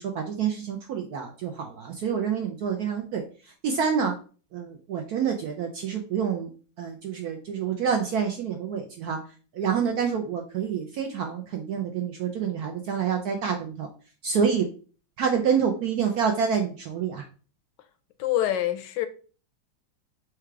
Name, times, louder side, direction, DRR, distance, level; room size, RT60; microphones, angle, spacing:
voice 1, 0.0-3.2 3.6-4.1 4.5-6.5 6.8-9.2 9.5-13.9 14.2-14.7 15.2-17.2, right 7 dB, 70° right, 0.9 m, -27 dB
voice 2, 18.2-19.1, left 12 dB, 70° left, 1.2 m, -25 dB
4.7 x 2.3 x 4.5 m
omnidirectional pair, 2.1 m